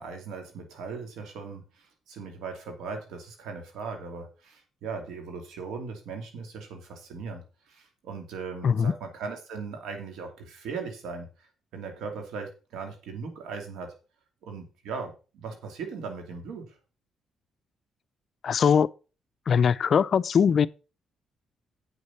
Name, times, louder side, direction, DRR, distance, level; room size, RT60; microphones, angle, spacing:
voice 1, 0.0-11.5 11.7-13.9 14.4-16.8, right 5 dB, 80° right, 2.7 m, -38 dB
voice 2, 18.4-18.9 19.5-20.7, left 7 dB, 55° left, 0.4 m, -21 dB
8.1 x 6.5 x 5.8 m
cardioid pair, 90°, 0 cm